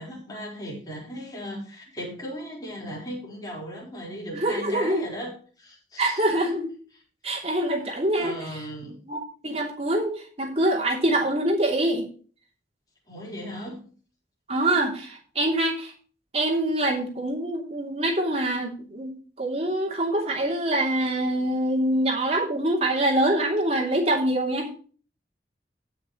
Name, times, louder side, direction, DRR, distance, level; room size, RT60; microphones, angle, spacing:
voice 1, 0.0-6.2 7.8-9.0 13.1-13.9, equal, 20° left, -3 dB, 4.2 m, -37 dB
voice 2, 4.3-5.1 6.0-6.7 7.2-8.3 9.1-12.1 14.5-15.9 16.3-19.1 19.4-24.8, right 1 dB, 35° right, 0 dB, 2.8 m, -25 dB
18.5 x 6.2 x 3.0 m, 0.40 s
head